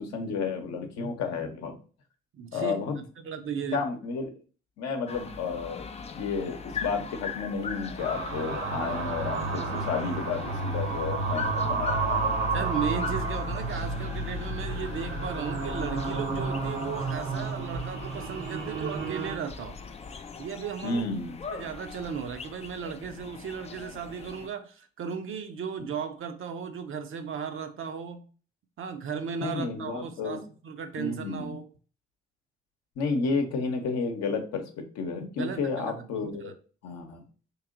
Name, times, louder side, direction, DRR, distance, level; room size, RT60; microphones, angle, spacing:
voice 1, 0.0-1.8 2.5-3.0 3.7-4.3 4.8-12.3 20.8-21.4 29.4-30.4 31.0-31.5 33.0-34.6 34.9-36.5 36.8-37.2, left 4 dB, 60° left, 4 dB, 0.9 m, -31 dB
voice 2, 2.3-3.8 12.5-19.8 20.4-21.0 21.5-28.2 28.8-31.7 35.4-36.5, right 7 dB, 45° right, 7 dB, 0.6 m, -36 dB
sound 1, 5.1-24.5, left 5 dB, 20° left, 0.4 m, -39 dB
sound 2, 8.0-19.4, right 4 dB, 70° right, 0.9 m, -31 dB
3.1 x 2.8 x 3.7 m, 0.39 s
figure-of-eight pair, 40°, 30 cm